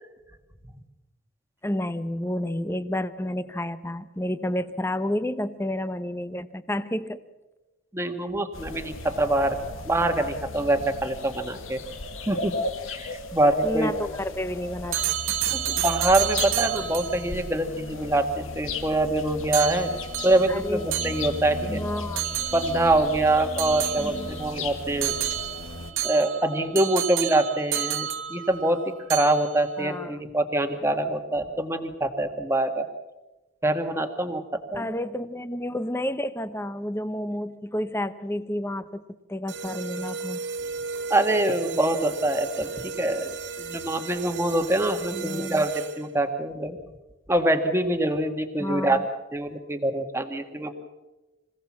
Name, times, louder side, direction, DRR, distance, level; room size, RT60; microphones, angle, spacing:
voice 1, 1.6-7.2 13.6-15.0 15.3-15.8 20.5-20.9 21.7-22.2 24.0-24.3 29.8-30.2 34.7-39.0 39.3-40.4 45.1-45.7 48.6-49.0, left 1 dB, 10° left, 13 dB, 0.8 m, -30 dB
voice 2, 7.9-9.6 9.8-11.8 12.3-12.5 12.9-13.9 15.8-19.9 20.2-21.8 22.5-25.2 26.0-28.8 29.1-32.8 33.6-34.4 34.7-34.9 41.1-46.8 47.3-49.0 49.3-50.7, right 1 dB, 15° right, 6 dB, 1.5 m, -24 dB
sound 1, 8.5-25.9, left 2 dB, 85° left, 1.9 m, -35 dB
sound 2, 14.9-17.3 19.5-21.6 22.2-22.9 23.6-24.5 25.0-28.8 29.1-29.6, right 12 dB, 85° right, 1.3 m, -30 dB
sound 3, 39.5-46.3, right 4 dB, 65° right, 1.9 m, -35 dB
25.5 x 16.5 x 7.3 m, 1.1 s
head